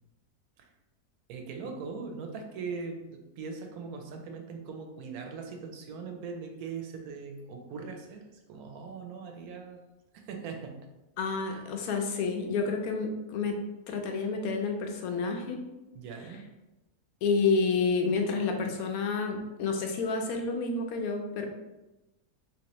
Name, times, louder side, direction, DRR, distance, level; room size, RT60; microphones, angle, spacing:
voice 1, 1.3-9.8 10.1-10.8 11.5-11.6 15.9-16.4, right 5 dB, 75° right, 3 dB, 1.1 m, -40 dB
voice 2, 11.2-13.5 13.9-15.6 17.2-21.5, left 4 dB, 75° left, 4 dB, 1.0 m, -29 dB
3.6 x 2.9 x 2.9 m, 1.0 s
omnidirectional pair, 1.6 m